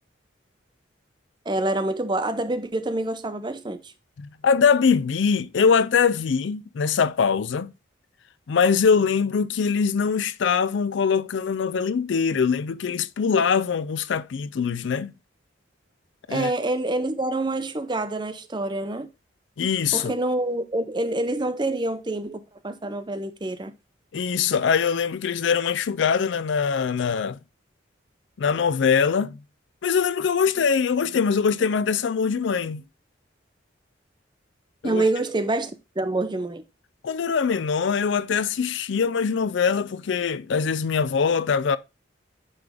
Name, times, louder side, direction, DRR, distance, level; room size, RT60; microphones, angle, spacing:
voice 1, 1.5-3.9 16.3-19.1 19.9-23.7 34.8-36.6, right 2 dB, 25° right, 0.6 m, -26 dB
voice 2, 4.2-7.7 8.5-15.1 16.3-16.5 19.6-20.1 24.1-27.4 28.4-29.4 29.8-32.8 34.8-35.0 37.0-41.8, left 6 dB, 70° left, 0.4 m, -22 dB
9.7 x 3.4 x 3.5 m
head